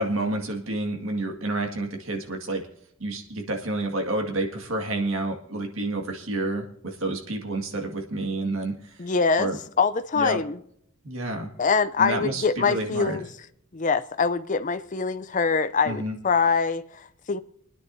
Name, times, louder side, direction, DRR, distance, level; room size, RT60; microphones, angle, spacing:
voice 1, 0.0-2.7 3.0-9.0 9.4-9.6 10.1-10.4 11.0-11.5 12.0-13.2 15.8-16.2, right 2 dB, 65° right, 2.0 m, -29 dB
voice 2, 9.0-9.5 9.8-10.6 11.6-13.3 13.7-17.4, left 5 dB, 35° left, 0.5 m, -24 dB
29.0 x 10.0 x 2.7 m
head